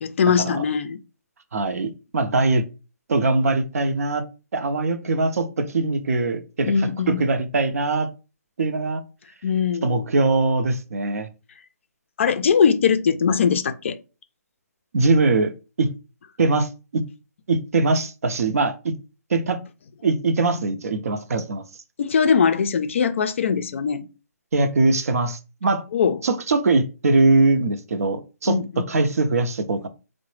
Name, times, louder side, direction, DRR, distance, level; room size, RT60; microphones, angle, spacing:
voice 1, 0.0-1.0 6.7-7.2 9.4-10.1 12.2-14.0 22.0-24.1 25.9-26.2 28.5-28.8, left 6 dB, 50° left, 0.4 m, -21 dB
voice 2, 1.5-2.6 3.1-4.2 4.5-6.7 7.1-8.1 8.6-9.0 9.8-11.3 14.9-15.9 16.4-17.0 17.5-18.9 19.3-19.6 20.0-21.7 24.5-25.8 26.2-28.6 28.9-29.9, right 3 dB, 60° right, 0.6 m, -22 dB
3.7 x 2.1 x 3.1 m
hypercardioid pair, 160°, 9 cm